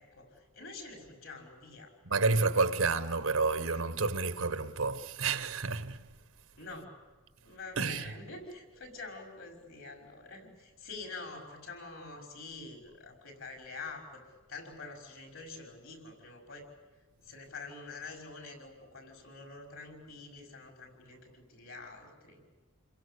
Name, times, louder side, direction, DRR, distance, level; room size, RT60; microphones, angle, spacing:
voice 1, 0.0-1.9 6.6-6.9 7.4-14.2 14.5-16.7 17.2-22.4, left 3 dB, 65° left, 5.8 m, -46 dB
voice 2, 2.0-6.1 7.8-8.1, right 4 dB, 80° right, 1.4 m, -30 dB
28.0 x 22.5 x 8.5 m
head